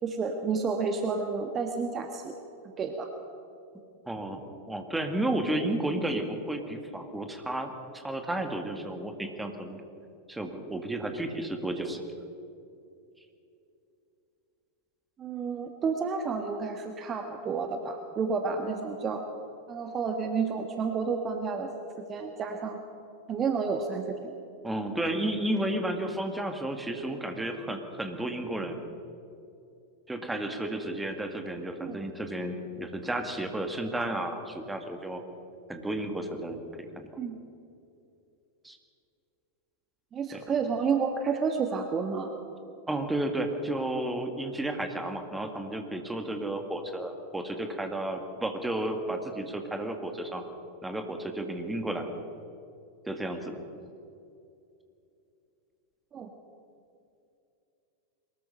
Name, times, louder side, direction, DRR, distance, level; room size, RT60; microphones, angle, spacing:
voice 1, 0.0-2.3 2.8-3.1 15.2-19.2 19.7-21.7 22.1-22.8 23.3-24.3 31.8-32.0 37.2-37.4 40.1-42.3 56.1-56.3, right 5 dB, 25° right, 5 dB, 1.5 m, -30 dB
voice 2, 4.1-4.4 4.7-9.8 10.3-12.0 24.6-28.8 30.1-35.2 35.7-37.1 38.6-38.8 40.3-40.4 42.9-50.4 50.8-52.1 53.1-53.6, right 1 dB, 5° right, 5 dB, 2.2 m, -32 dB
23.5 x 20.0 x 5.6 m, 2.7 s
figure-of-eight pair, 90°, 0 cm